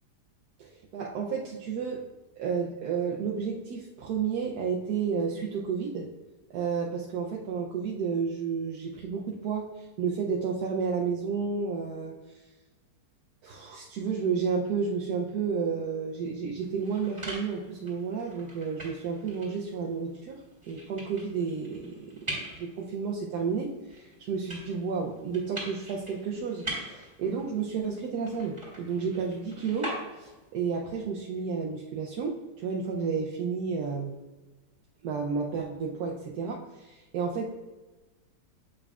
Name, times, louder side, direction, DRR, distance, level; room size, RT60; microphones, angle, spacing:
voice 1, 0.6-2.0 2.4-6.1 6.5-12.4 13.4-22.1 22.6-34.1 35.0-37.5, right 5 dB, 70° right, -1 dB, 1.1 m, -31 dB
sound 1, 16.6-30.5, right 1 dB, 15° right, 2.1 m, -43 dB
8.2 x 5.5 x 2.4 m, 1.2 s
omnidirectional pair, 1.9 m